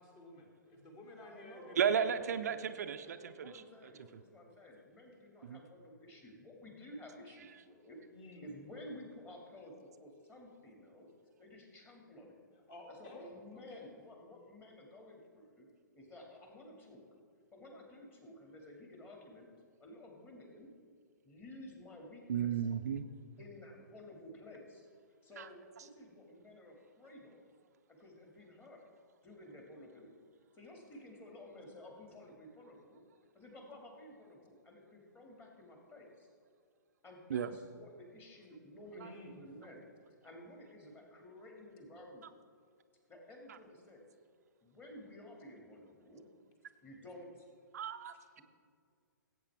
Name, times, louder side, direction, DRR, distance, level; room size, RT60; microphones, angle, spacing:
voice 1, 0.0-2.6 8.1-8.5 12.5-13.9 38.9-39.4, left 1 dB, 35° left, 1 dB, 2.2 m, -53 dB
voice 2, 1.0-2.2 2.5-8.0 8.2-9.7 10.0-11.1 11.4-12.4 12.9-15.7 15.9-17.0 17.5-19.5 19.8-20.7 21.2-22.7 23.4-24.9 25.2-27.4 27.9-28.8 29.2-30.2 30.5-33.0 33.3-36.3 37.0-42.3 43.1-44.1 44.6-46.3 46.8-47.5, left 1 dB, 20° left, 1 dB, 2.1 m, -53 dB
voice 3, 1.8-3.5 4.1-4.2 5.4-5.6 22.3-23.0 25.4-25.5 37.3-37.5 43.5-43.6 47.7-48.4, right 8 dB, 55° right, 9 dB, 0.5 m, -34 dB
17.0 x 8.3 x 3.4 m, 2.1 s
figure-of-eight pair, 120°, 11 cm